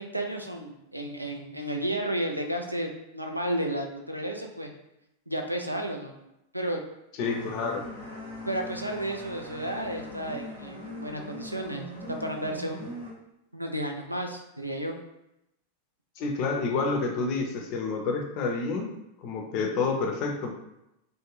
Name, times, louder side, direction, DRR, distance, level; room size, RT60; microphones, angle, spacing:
voice 1, 0.0-4.7 5.3-6.1 6.5-6.8 8.5-12.9 13.5-14.9, right 1 dB, 85° right, 3 dB, 0.3 m, -32 dB
voice 2, 7.2-7.8 16.2-18.9 19.2-20.5, left 4 dB, 40° left, 3 dB, 0.5 m, -29 dB
sound 1, 7.2-13.1, equal, 70° right, 1.0 m, -41 dB
2.4 x 2.1 x 3.2 m, 0.87 s
figure-of-eight pair, 90°, 0 cm